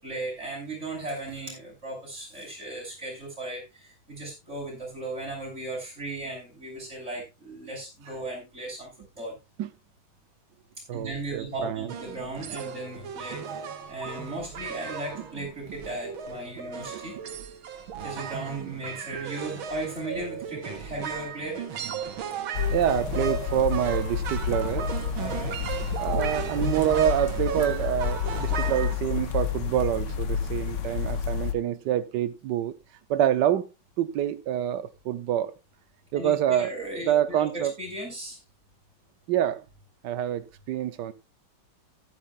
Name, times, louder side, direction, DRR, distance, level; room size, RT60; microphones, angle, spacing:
voice 1, 0.0-8.9 9.1-9.3 10.9-17.2 18.0-21.7 25.1-25.6 36.1-38.4, right 2 dB, 35° right, 6.7 m, -36 dB
voice 2, 10.9-11.9 16.9-17.0 22.7-24.9 26.0-32.8 33.1-33.7 34.0-35.5 36.1-36.7 37.0-37.7 39.3-39.6 40.0-41.1, right 11 dB, 65° right, 1.3 m, -26 dB
sound 1, 11.9-29.0, right 7 dB, 85° right, 2.0 m, -35 dB
sound 2, 22.5-31.5, left 8 dB, 65° left, 1.6 m, -30 dB
14.5 x 12.0 x 2.5 m
omnidirectional pair, 2.2 m